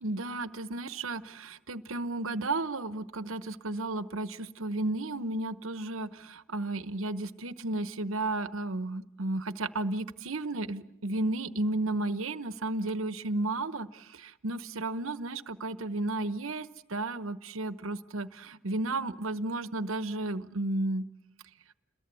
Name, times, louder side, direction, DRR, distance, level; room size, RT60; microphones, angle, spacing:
voice 1, 0.0-21.0, right 2 dB, 75° right, 13 dB, 1.1 m, -33 dB
29.0 x 22.0 x 8.3 m, 0.84 s
head